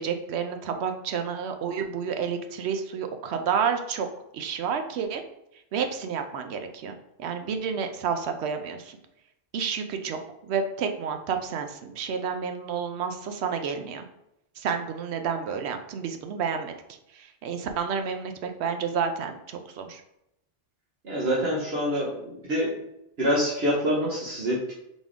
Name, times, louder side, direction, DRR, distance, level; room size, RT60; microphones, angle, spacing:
voice 1, 0.0-4.1 4.3-5.2 5.7-9.0 9.5-14.0 14.6-16.7 17.1-20.0, right 6 dB, 90° right, 6 dB, 0.8 m, -30 dB
voice 2, 21.0-22.7 23.2-24.7, equal, 70° right, -6 dB, 1.3 m, -26 dB
4.2 x 3.4 x 3.6 m, 0.84 s
omnidirectional pair, 1.1 m